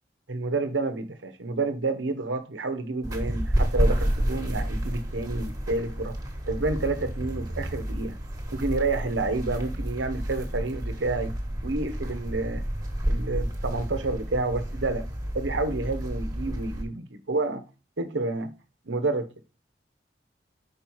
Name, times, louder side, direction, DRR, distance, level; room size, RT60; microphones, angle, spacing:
voice 1, 0.3-6.2 6.5-8.2 8.5-11.3 11.6-12.6 13.1-15.0 15.3-17.6 18.0-18.5 18.9-19.3, right 3 dB, 85° right, 0.9 m, -29 dB
sound 1, 3.0-16.8, equal, 20° right, 1.3 m, -30 dB
5.4 x 4.6 x 5.4 m
head